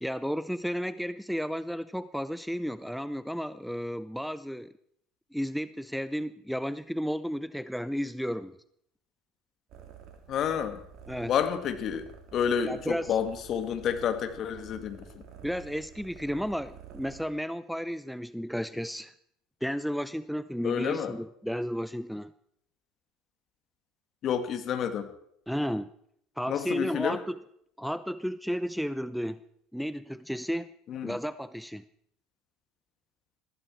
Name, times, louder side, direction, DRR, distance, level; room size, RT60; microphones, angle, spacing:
voice 1, 0.0-4.7 5.3-8.5 11.1-11.3 12.6-13.2 15.4-19.1 19.6-22.3 25.5-25.9 26.4-27.4 27.8-29.4 29.7-30.7 31.0-31.8, equal, ahead, 14 dB, 0.6 m, -33 dB
sound 1, 9.7-17.2, right 6 dB, 55° right, 3.4 m, -49 dB
voice 2, 10.3-10.8 11.3-12.1 12.3-15.2 20.6-21.2 24.2-25.1 26.5-27.2 30.9-31.2, left 8 dB, 50° left, 8 dB, 2.2 m, -29 dB
20.5 x 15.0 x 4.6 m, 0.70 s
hypercardioid pair, 65°, 0 cm